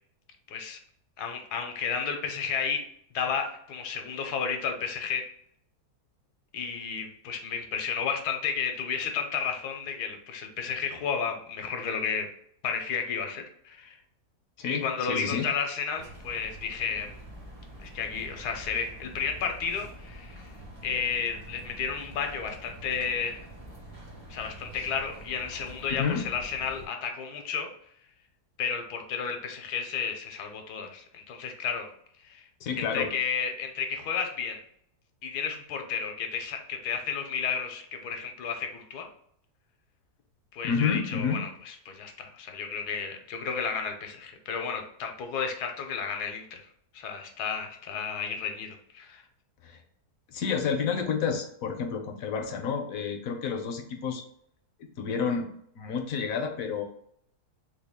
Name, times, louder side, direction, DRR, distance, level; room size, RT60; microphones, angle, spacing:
voice 1, 0.5-0.8 1.2-2.8 3.1-5.2 6.5-12.3 12.6-14.0 14.7-17.1 17.8-20.5 20.8-23.4 24.3-27.7 28.6-31.9 32.2-32.5 32.8-34.6 35.2-39.1 40.5-41.5 41.9-46.6 46.9-49.2, left 6 dB, 85° left, 4 dB, 1.2 m, -32 dB
voice 2, 14.6-15.5 25.9-26.3 32.6-33.1 40.6-41.4 49.6-49.8 50.3-54.2 55.0-56.8, left 6 dB, 70° left, 4 dB, 1.0 m, -30 dB
sound 1, 15.9-26.9, right 1 dB, 30° right, 0.7 m, -46 dB
3.6 x 2.3 x 3.4 m, 0.69 s
omnidirectional pair, 1.7 m